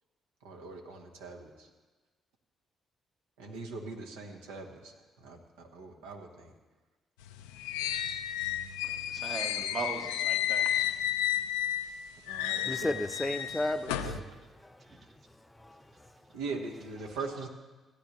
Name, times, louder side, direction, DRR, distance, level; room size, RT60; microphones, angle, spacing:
voice 1, 0.4-1.7 3.4-6.5 12.3-13.0 14.0-14.2 16.3-17.5, right 3 dB, 85° right, 1.3 m, -41 dB
sound 1, 7.2-11.9 12.3-14.2, left 11 dB, 90° left, 0.5 m, -32 dB
voice 2, 8.8-11.2 12.6-12.7 14.9-15.1, right 4 dB, 55° right, 1.4 m, -40 dB
voice 3, 12.6-14.1 14.6-16.4, left 1 dB, 15° left, 0.7 m, -36 dB
16.0 x 10.0 x 3.1 m
hypercardioid pair, 50°, 0 cm